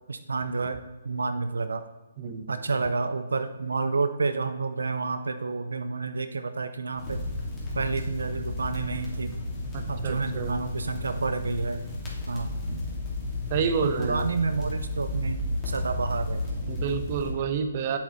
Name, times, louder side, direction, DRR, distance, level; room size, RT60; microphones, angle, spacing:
voice 1, 0.1-0.8 1.0-1.9 2.5-7.2 7.7-9.3 9.9-11.8 12.3-12.5 14.0-15.4 15.6-16.7, right 4 dB, 85° right, 9 dB, 0.6 m, -29 dB
sound 1, 7.0-17.3, left 1 dB, 20° left, 2.6 m, -33 dB
voice 2, 9.7-10.6 13.5-14.3 16.7-18.0, right 6 dB, 40° right, 8 dB, 0.9 m, -29 dB
7.7 x 7.1 x 4.0 m, 1.1 s
hypercardioid pair, 145°, 0 cm